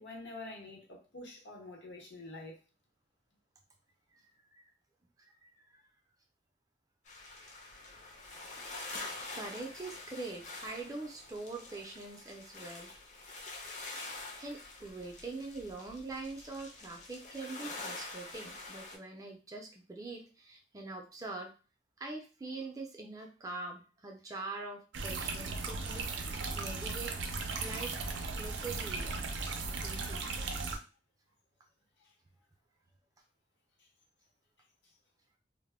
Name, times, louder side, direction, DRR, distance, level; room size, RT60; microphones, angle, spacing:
voice 1, 0.0-2.6 32.0-32.1, left 2 dB, 75° left, 0.8 m, -47 dB
voice 2, 5.2-5.8 9.0-12.9 13.7-13.8 14.2-21.5 22.0-27.1 27.6-27.9 28.3-29.1 29.8-30.3, right 3 dB, 20° right, 0.4 m, -44 dB
sound 1, 7.1-19.0, left 2 dB, 40° left, 0.5 m, -46 dB
sound 2, 24.9-30.8, right 3 dB, 85° right, 0.4 m, -37 dB
2.1 x 2.0 x 3.4 m
head